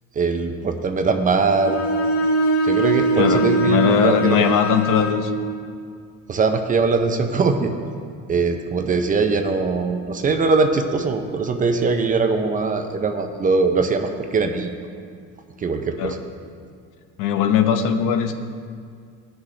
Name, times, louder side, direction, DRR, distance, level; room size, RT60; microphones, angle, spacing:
voice 1, 0.2-1.9 2.6-4.4 6.3-7.7 8.3-14.8 15.6-16.2, right 4 dB, 25° right, 6 dB, 0.5 m, -21 dB
Bowed string instrument, 1.5-5.3, right 2 dB, 40° left, 1.8 m, -21 dB
voice 2, 3.2-5.3 16.0-16.2 17.2-18.3, left 8 dB, 65° left, 8 dB, 0.8 m, -20 dB
17.0 x 6.2 x 3.2 m, 2.1 s
cardioid pair, 160°, 33 cm